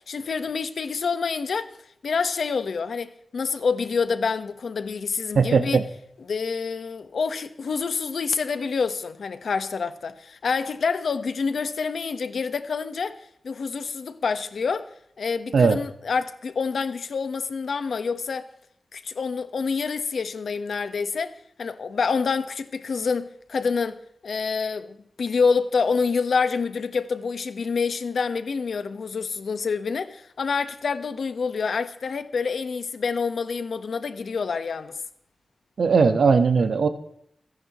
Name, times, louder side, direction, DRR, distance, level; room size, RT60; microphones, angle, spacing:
voice 1, 0.0-1.7 2.0-5.8 6.3-14.9 15.2-18.5 18.9-35.0, left 5 dB, 75° left, 1.3 m, -27 dB
voice 2, 5.3-5.8 15.5-15.8 35.8-36.9, right 5 dB, 80° right, 1.4 m, -18 dB
28.5 x 10.5 x 3.1 m
wide cardioid pair, 130°, 0 cm